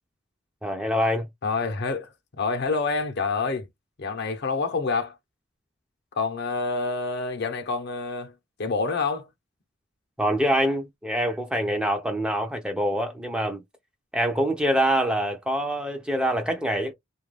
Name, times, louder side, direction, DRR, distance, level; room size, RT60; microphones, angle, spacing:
voice 1, 0.6-1.3 10.2-13.6 14.1-16.9, equal, 5° right, 0.4 m, -25 dB
voice 2, 1.4-3.7 4.0-5.2 6.1-8.3 8.6-9.3, left 4 dB, 55° left, 0.6 m, -27 dB
2.3 x 2.1 x 3.2 m
head